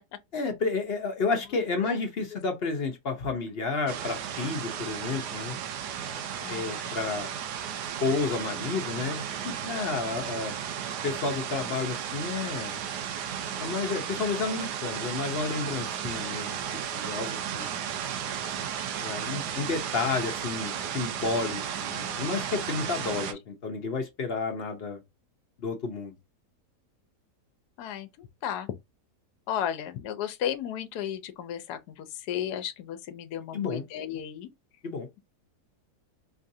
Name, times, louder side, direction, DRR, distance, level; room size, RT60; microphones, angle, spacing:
voice 1, 0.3-5.5 6.5-7.3 8.0-10.5 11.0-12.8 13.6-16.5 16.9-17.7 19.0-25.0 25.6-26.1 33.5-33.8 34.8-35.1, left 4 dB, 50° left, 0.8 m, -31 dB
sound 1, 3.9-23.3, right 8 dB, 80° right, 1.2 m, -34 dB
voice 2, 6.4-6.9 9.9-10.1 23.1-23.2 27.8-28.7 29.5-34.5, left 10 dB, 75° left, 1.1 m, -34 dB
4.6 x 2.4 x 2.7 m
omnidirectional pair, 1.8 m